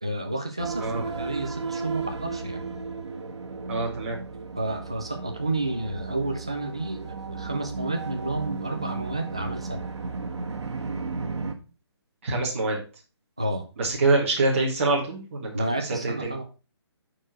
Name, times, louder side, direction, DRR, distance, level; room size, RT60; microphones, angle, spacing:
voice 1, 0.0-2.6 4.6-9.9 13.4-13.6 15.5-16.4, right 2 dB, 10° right, 4 dB, 0.3 m, -30 dB
sound 1, 0.6-11.5, right 4 dB, 90° right, 1.4 m, -34 dB
voice 2, 3.7-4.2 12.2-12.8 13.8-15.5 16.0-16.3, right 3 dB, 30° right, -4 dB, 2.0 m, -25 dB
9.7 x 4.6 x 4.5 m, 0.33 s
hypercardioid pair, 180°, 14 cm